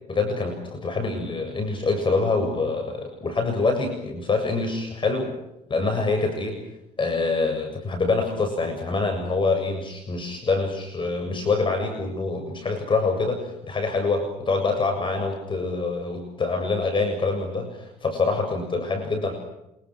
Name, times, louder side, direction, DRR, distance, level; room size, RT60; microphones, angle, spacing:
voice 1, 0.1-5.3 5.7-6.6 7.0-19.3, left 3 dB, 30° left, 4 dB, 7.3 m, -25 dB
29.0 x 26.5 x 6.4 m, 0.88 s
cardioid pair, 110°, 17 cm